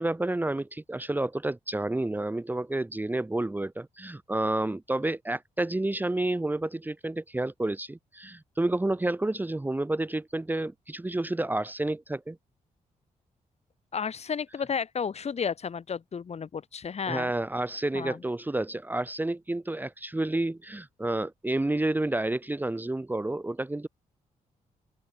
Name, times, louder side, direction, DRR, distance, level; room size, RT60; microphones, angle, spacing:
voice 1, 0.0-12.4 17.1-23.9, right 2 dB, 15° right, 1.2 m, -30 dB
voice 2, 13.9-17.3 17.9-18.2, left 6 dB, 50° left, 3.0 m, -32 dB
open air
cardioid pair, 85°, 14 cm